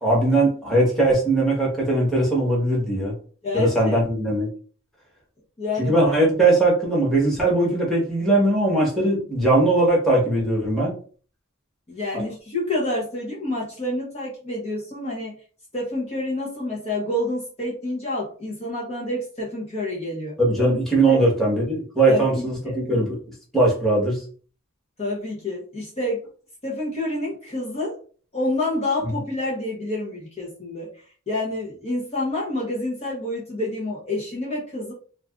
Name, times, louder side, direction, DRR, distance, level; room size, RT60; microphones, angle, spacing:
voice 1, 0.0-3.1 3.5-4.5 5.8-10.9 12.1-12.2 20.4-23.2 23.5-24.2 29.0-29.1, right 2 dB, ahead, -5 dB, 1.2 m, -20 dB
voice 2, 3.4-4.0 5.6-6.1 11.9-15.4 15.7-20.4 21.1-21.3 22.1-22.8 25.0-26.2 26.6-28.0 28.3-30.9 31.3-34.9, left 1 dB, 30° left, -4 dB, 0.8 m, -28 dB
2.5 x 2.4 x 3.5 m, 0.41 s
head